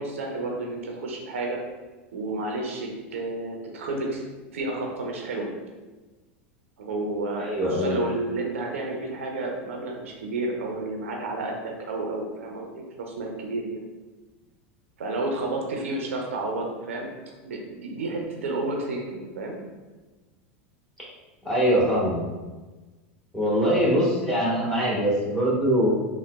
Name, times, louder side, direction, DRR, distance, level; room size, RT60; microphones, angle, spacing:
voice 1, 0.0-1.6 2.1-4.2 4.5-5.5 6.8-13.8 15.0-17.1 17.4-19.6, right 2 dB, 85° right, 1 dB, 0.6 m, -31 dB
voice 2, 7.4-8.0 21.4-22.2 23.3-25.9, equal, 5° left, -7 dB, 1.2 m, -23 dB
3.9 x 2.1 x 2.2 m, 1.2 s
hypercardioid pair, 105°, 7 cm